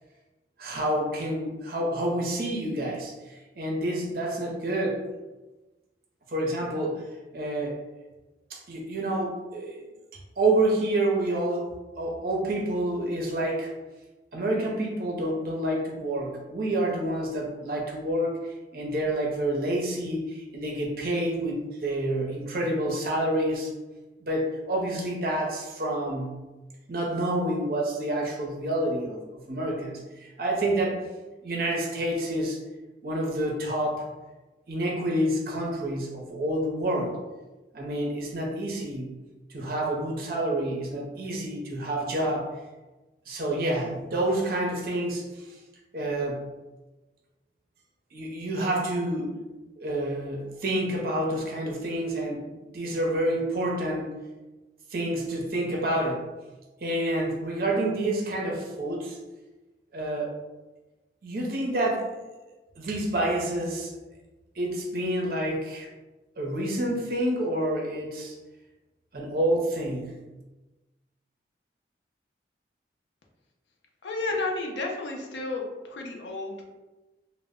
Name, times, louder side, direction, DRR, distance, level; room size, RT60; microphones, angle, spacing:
voice 1, 0.6-5.0 6.3-7.0 7.3-7.8 8.5-9.8 10.1-13.7 14.3-18.4 18.7-23.7 24.2-26.4 26.9-31.0 31.4-32.6 33.0-34.1 34.7-37.2 37.7-39.1 39.5-42.5 43.3-45.4 45.9-46.5 48.1-49.3 49.8-54.1 54.9-56.3 56.8-59.2 59.9-60.3 61.2-62.2 62.8-63.9 64.6-65.9 66.4-68.4 69.1-70.2, right 1 dB, 55° right, -1 dB, 0.5 m, -28 dB
voice 2, 74.0-76.6, left 2 dB, 85° left, 0 dB, 0.5 m, -32 dB
2.0 x 2.0 x 3.5 m, 1.1 s
head